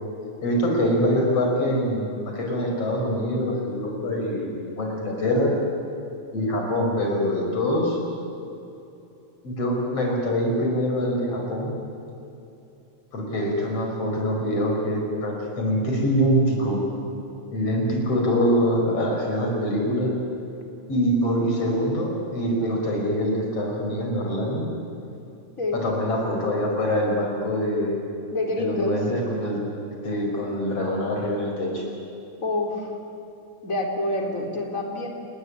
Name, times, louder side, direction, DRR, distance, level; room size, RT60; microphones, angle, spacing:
voice 1, 0.4-5.5 6.3-8.0 9.4-11.8 13.1-16.8 17.5-20.1 20.9-24.7 25.7-28.0 28.6-29.6 30.0-31.8, equal, 50° left, 0 dB, 6.7 m, -24 dB
voice 2, 28.3-28.9 32.4-32.9 33.6-35.1, left 2 dB, 25° left, 2 dB, 4.1 m, -27 dB
29.5 x 20.0 x 10.0 m, 2.9 s
omnidirectional pair, 3.4 m